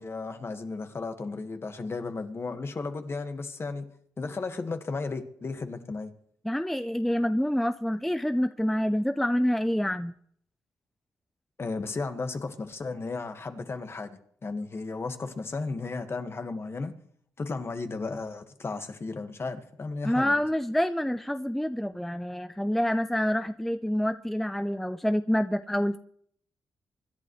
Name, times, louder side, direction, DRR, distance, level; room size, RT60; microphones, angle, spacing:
voice 1, 0.0-3.8 4.2-6.1 11.6-16.9 17.4-20.3, left 3 dB, 40° left, 7 dB, 1.7 m, -34 dB
voice 2, 6.4-10.1 20.0-26.0, equal, 5° left, 10 dB, 0.5 m, -27 dB
25.0 x 11.0 x 3.2 m, 0.64 s
cardioid pair, 70°, 6 cm